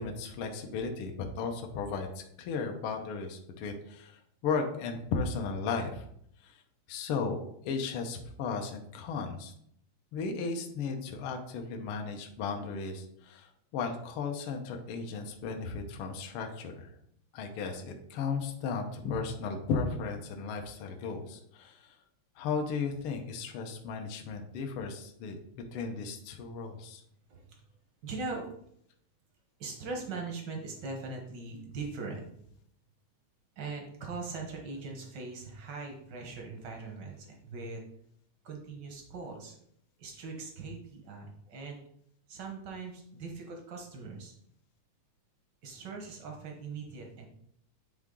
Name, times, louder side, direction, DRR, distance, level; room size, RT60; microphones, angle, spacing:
voice 1, 0.0-6.0 6.4-6.6 6.9-9.5 10.1-16.9 17.3-22.0 22.4-25.4 25.7-27.0, left 5 dB, 75° left, 3 dB, 1.2 m, -35 dB
voice 2, 27.3-27.6 28.0-28.4 29.6-32.3 33.6-37.8 38.4-39.5 40.0-41.8 42.3-44.3 45.6-47.3, right 3 dB, 70° right, 1 dB, 1.0 m, -41 dB
8.9 x 3.6 x 3.7 m, 0.69 s
omnidirectional pair, 3.4 m